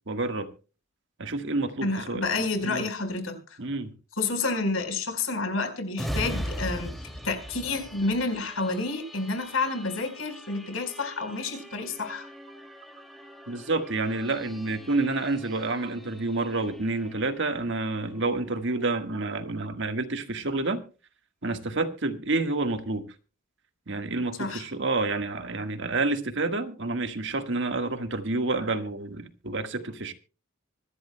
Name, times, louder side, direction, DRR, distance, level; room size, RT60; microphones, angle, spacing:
voice 1, 0.1-0.5 1.2-2.2 2.6-2.8 3.6-3.9 13.5-20.8 21.4-23.1 23.9-30.1, right 3 dB, 65° right, 1.5 m, -29 dB
voice 2, 1.8-3.6 4.2-12.3 24.4-24.7, left 3 dB, 85° left, 4.4 m, -29 dB
sound 1, 5.9-19.3 19.7-19.9, equal, ahead, 2.5 m, -40 dB
25.5 x 12.0 x 2.2 m
head